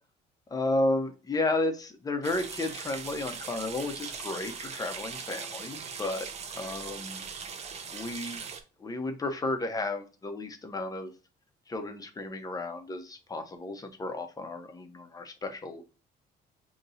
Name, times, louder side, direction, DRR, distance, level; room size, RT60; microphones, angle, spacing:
voice 1, 0.5-6.3 6.5-7.2 7.9-8.5 8.8-11.1 11.7-15.8, left 2 dB, 20° left, 6 dB, 0.8 m, -33 dB
sound 1, 2.2-8.6, right 6 dB, 40° right, 0.7 m, -40 dB
5.3 x 3.0 x 2.6 m, 0.32 s
cardioid pair, 110°, 17 cm